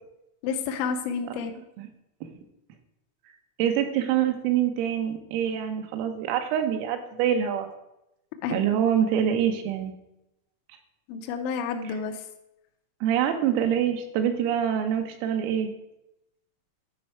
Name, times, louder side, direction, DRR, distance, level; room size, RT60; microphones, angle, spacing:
voice 1, 0.4-1.6 8.4-8.7 11.1-12.2, left 6 dB, 80° left, 4 dB, 2.7 m, -30 dB
voice 2, 3.6-7.7 8.5-9.9 13.0-15.7, right 9 dB, 85° right, 6 dB, 3.6 m, -25 dB
12.0 x 5.4 x 4.7 m, 0.86 s
omnidirectional pair, 5.9 m